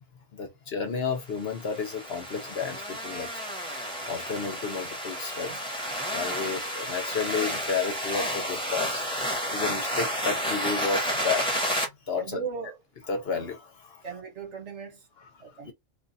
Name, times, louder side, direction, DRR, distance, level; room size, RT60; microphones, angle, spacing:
voice 1, 0.3-3.3 3.7-9.0 9.5-12.4 13.1-14.0 15.6-15.7, left 5 dB, 55° left, 0.9 m, -32 dB
sound 1, 1.4-11.8, equal, 5° left, 1.1 m, -31 dB
voice 2, 12.2-12.8 14.0-15.0 15.4-15.7, right 6 dB, 65° right, 1.4 m, -37 dB
2.5 x 2.4 x 4.0 m
omnidirectional pair, 1.3 m